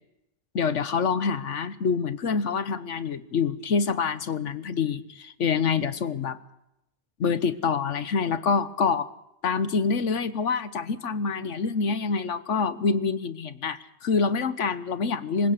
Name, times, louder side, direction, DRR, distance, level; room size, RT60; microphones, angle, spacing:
voice 1, 0.5-6.4 7.2-9.1 9.4-15.5, left 5 dB, 85° left, 13 dB, 1.4 m, -26 dB
26.5 x 16.5 x 6.8 m, 0.85 s
omnidirectional pair, 1.2 m